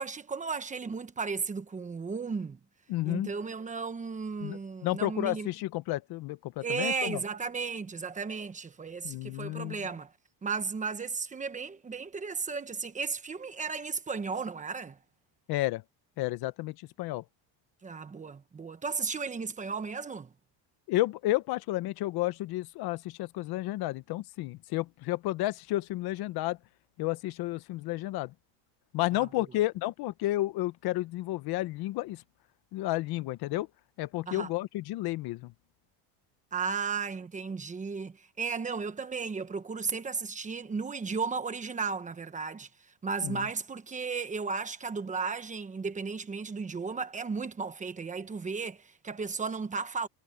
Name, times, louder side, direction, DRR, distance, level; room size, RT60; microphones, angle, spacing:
voice 1, 0.0-2.6 3.0-5.5 6.6-10.1 10.4-15.0 17.8-20.3 29.1-29.4 34.3-34.5 36.5-42.7 43.0-50.1, right 5 dB, 15° right, 1.1 m, -34 dB
voice 2, 2.9-3.3 4.4-7.2 9.0-9.8 15.5-15.8 16.2-17.2 20.9-26.6 27.0-28.3 28.9-32.2 32.7-33.7 34.0-35.5 43.2-43.4, left 17 dB, 55° left, 0.8 m, -31 dB
cardioid pair, 160°, 46 cm